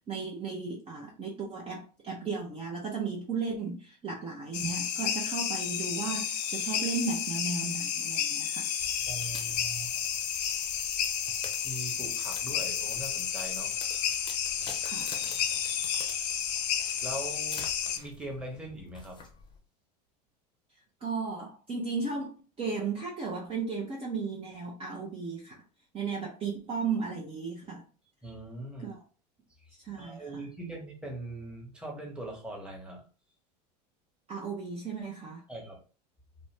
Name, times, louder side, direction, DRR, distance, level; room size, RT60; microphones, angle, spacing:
voice 1, 0.1-9.0 14.8-15.1 21.0-25.6 25.9-27.9 28.8-29.0 29.8-30.4 34.3-35.4, right 4 dB, 25° right, -2 dB, 0.6 m, -35 dB
sound 1, 4.5-18.0, left 8 dB, 75° left, 0.4 m, -31 dB
sound 2, 8.8-19.6, left 3 dB, 20° left, 0.7 m, -48 dB
voice 2, 9.1-9.9 11.6-14.0 16.7-19.2 28.2-28.9 30.0-33.0 35.5-35.8, right 1 dB, 5° right, -1 dB, 1.1 m, -41 dB
2.5 x 2.1 x 3.2 m, 0.36 s
hypercardioid pair, 90°, 21 cm